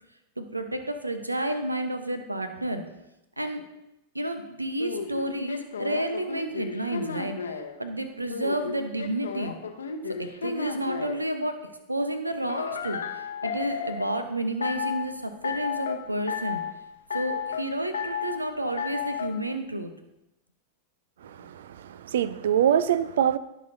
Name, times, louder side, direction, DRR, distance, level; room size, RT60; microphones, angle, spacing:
voice 1, 0.4-2.8 3.4-3.6 4.1-9.5 10.2-16.6 17.1-19.9, right 1 dB, 85° right, 0.8 m, -31 dB
sound 1, 4.8-7.7 8.3-11.2 12.5-14.1 14.6-15.1 15.4-16.0 16.3-16.7 17.1-17.6 17.9-18.4 18.8-19.3, left 6 dB, 70° left, 0.9 m, -32 dB
voice 2, 21.2-23.4, right 9 dB, 60° right, 0.4 m, -24 dB
17.5 x 6.3 x 2.7 m
figure-of-eight pair, 90°, 0 cm